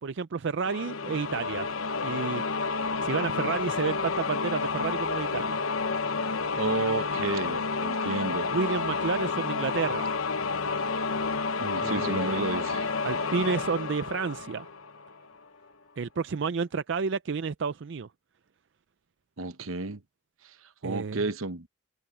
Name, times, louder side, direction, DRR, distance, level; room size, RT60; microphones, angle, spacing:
voice 1, 0.0-1.7 2.0-2.6 3.0-5.6 8.5-10.1 11.8-12.4 13.0-14.7 16.0-18.1 20.8-21.2, right 5 dB, 60° right, 0.5 m, -30 dB
sound 1, 0.6-15.3, left 4 dB, 85° left, 1.0 m, -30 dB
voice 2, 6.6-8.5 11.6-12.9 13.1-13.2 19.4-20.0 20.4-20.5 20.8-21.7, right 3 dB, 80° right, 1.0 m, -31 dB
sound 2, 14.4-16.8, left 4 dB, 45° left, 7.6 m, -63 dB
head